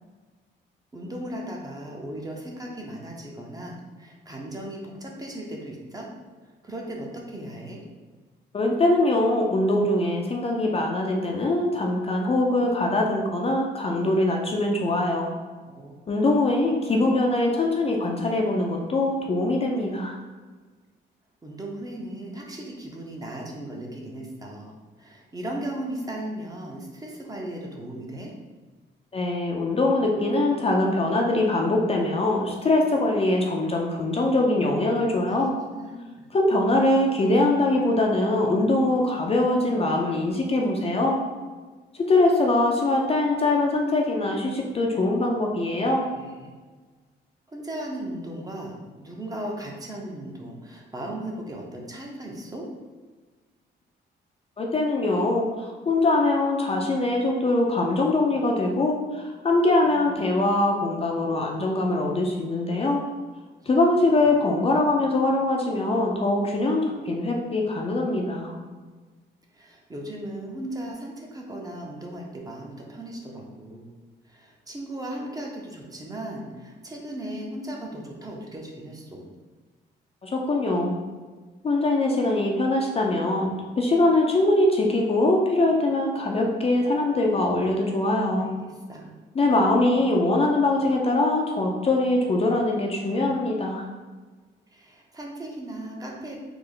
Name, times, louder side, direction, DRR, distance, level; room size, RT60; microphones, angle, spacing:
voice 1, 0.9-6.1 6.4-7.8 15.7-15.9 21.4-24.7 25.0-28.3 35.3-35.4 35.6-36.2 46.1-46.5 47.5-52.7 59.8-60.3 64.3-64.4 68.4-68.7 69.5-73.9 74.2-79.3 88.4-89.2 94.7-96.4, right 1 dB, 20° right, -1 dB, 0.6 m, -37 dB
voice 2, 8.5-15.3 16.1-20.2 29.1-35.5 36.3-41.2 41.9-46.1 54.6-63.0 63.7-68.5 80.2-81.0 81.6-88.5 89.3-93.9, left 2 dB, 30° left, 0 dB, 0.4 m, -23 dB
3.3 x 2.0 x 3.6 m, 1.4 s
cardioid pair, 90°, 20 cm